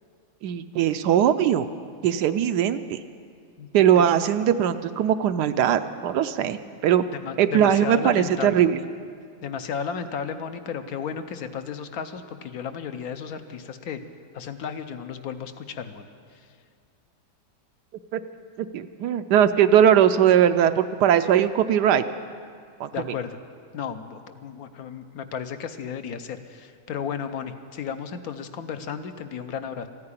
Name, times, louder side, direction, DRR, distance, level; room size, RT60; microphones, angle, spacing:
voice 1, 0.4-1.7 2.0-3.0 3.7-7.0 7.4-8.8 18.1-18.2 18.7-22.0 22.8-22.9, right 9 dB, 75° right, 10 dB, 1.1 m, -20 dB
voice 2, 7.2-8.6 9.4-14.0 14.3-16.1 22.9-23.4 23.7-29.9, left 7 dB, 65° left, 9 dB, 1.1 m, -34 dB
14.0 x 9.7 x 9.9 m, 2.2 s
omnidirectional pair, 1.9 m